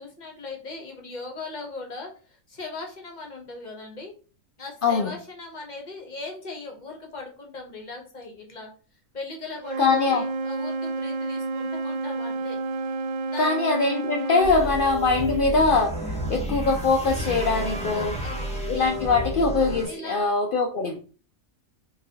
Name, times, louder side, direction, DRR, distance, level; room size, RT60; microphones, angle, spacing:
voice 1, 0.0-4.1 4.6-8.7 9.1-12.6 13.2-13.6 14.6-14.7 17.9-18.6 19.8-20.3, left 3 dB, 40° left, 1 dB, 0.9 m, -39 dB
voice 2, 4.8-5.1 9.8-10.2 13.4-18.2 18.7-21.0, left 3 dB, 80° left, 2 dB, 0.4 m, -22 dB
Wind instrument woodwind instrument, 9.6-14.6, right 3 dB, 85° right, 0.4 m, -30 dB
sound 1, 14.4-19.9, right 1 dB, 5° left, 0.7 m, -31 dB
3.9 x 2.9 x 2.7 m, 0.37 s
omnidirectional pair, 1.5 m